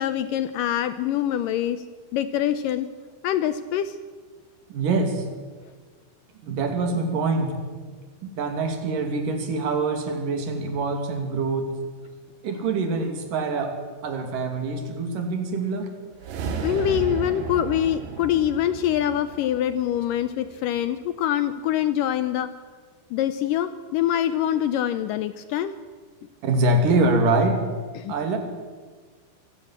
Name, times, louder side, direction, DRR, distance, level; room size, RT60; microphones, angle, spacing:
voice 1, 0.0-1.8 2.1-2.9 3.2-4.0 16.6-22.5 23.1-25.7 28.0-28.1, left 11 dB, 80° left, 12 dB, 2.0 m, -24 dB
voice 2, 4.7-5.3 6.4-7.6 8.2-11.7 12.4-13.8 14.0-15.9 26.4-27.6 28.1-28.4, right 3 dB, 55° right, 6 dB, 3.8 m, -24 dB
sound 1, 16.1-20.5, right 5 dB, 85° right, 4.0 m, -33 dB
24.0 x 17.0 x 7.4 m, 1.5 s
omnidirectional pair, 4.6 m